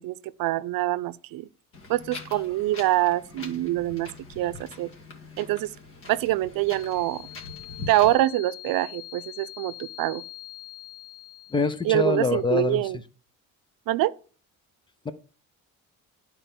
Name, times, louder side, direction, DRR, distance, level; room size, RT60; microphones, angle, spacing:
voice 1, 0.0-1.5 1.9-4.1 4.4-4.9 5.4-5.7 6.1-7.2 7.9-10.2 11.8-13.0 13.9-14.1, right 15 dB, 90° right, 0.6 m, -25 dB
Wind, 1.7-8.1, left 3 dB, 40° left, 1.9 m, -43 dB
sound 1, 6.7-12.3, left 17 dB, 80° left, 1.2 m, -44 dB
voice 2, 11.5-13.0 15.0-15.1, left 3 dB, 15° left, 0.6 m, -25 dB
11.5 x 4.4 x 6.9 m
cardioid pair, 175°, 33 cm